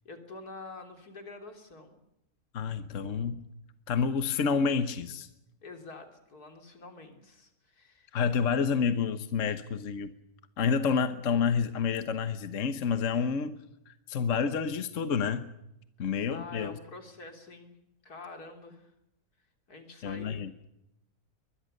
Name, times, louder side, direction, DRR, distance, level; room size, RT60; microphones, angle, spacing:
voice 1, 0.1-2.0 5.6-8.2 16.3-17.8 18.0-18.9 19.7-20.4, left 3 dB, 85° left, 5 dB, 3.8 m, -47 dB
voice 2, 2.5-3.4 3.9-5.3 8.1-10.1 10.6-13.5 13.9-15.5 16.0-16.7 20.0-20.5, left 6 dB, 55° left, 10 dB, 1.4 m, -29 dB
23.5 x 21.5 x 6.6 m, 0.85 s
omnidirectional pair, 1.6 m